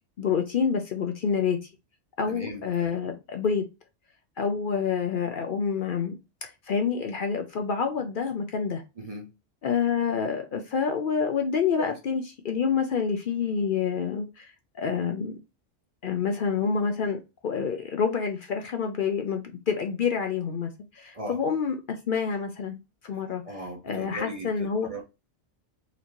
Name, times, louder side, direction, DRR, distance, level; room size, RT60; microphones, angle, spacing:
voice 1, 0.2-1.6 2.2-3.6 4.4-6.1 6.4-8.8 9.6-15.4 16.0-22.8 23.0-23.4 23.8-24.9, left 6 dB, 55° left, 0.6 m, -28 dB
voice 2, 2.3-2.7 3.0-3.1 9.0-9.3 10.1-10.2 11.8-11.9 21.1-21.4 23.4-25.0, right 1 dB, 40° right, 0.7 m, -38 dB
4.2 x 2.6 x 2.9 m
omnidirectional pair, 1.2 m